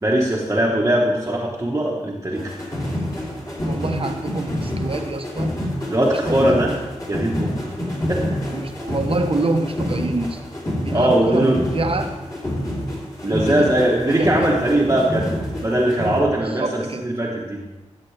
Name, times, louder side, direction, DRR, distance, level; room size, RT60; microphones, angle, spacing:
voice 1, 0.0-2.5 5.9-6.7 7.1-7.7 8.1-8.4 10.9-11.6 13.2-15.3 15.6-17.6, right 1 dB, 25° right, -3 dB, 1.2 m, -20 dB
sound 1, 2.3-16.2, left 1 dB, 30° left, 3.1 m, -27 dB
voice 2, 3.6-5.5 6.3-6.6 8.5-10.4 10.8-12.1 13.3-13.7 14.1-14.5 16.5-17.0, right 3 dB, 50° right, 6 dB, 0.9 m, -26 dB
14.0 x 7.5 x 3.3 m, 1.1 s
wide cardioid pair, 85°, 12 cm